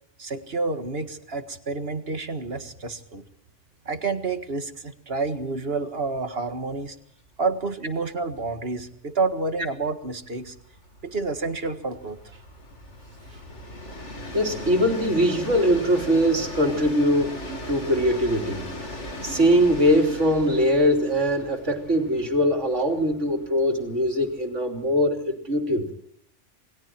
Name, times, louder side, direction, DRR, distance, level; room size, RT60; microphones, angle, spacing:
voice 1, 0.2-3.2 3.9-7.0 7.4-10.6 11.0-12.4 13.3-13.4, right 3 dB, 55° right, 8 dB, 2.0 m, -29 dB
Train, 6.5-6.6 6.9-7.0 7.3-24.7, left 1 dB, 75° left, 3.4 m, -39 dB
voice 2, 14.3-17.4 17.7-18.6 19.2-25.9, equal, 80° right, 4 dB, 3.6 m, -22 dB
28.5 x 22.0 x 4.5 m, 0.66 s
omnidirectional pair, 1.2 m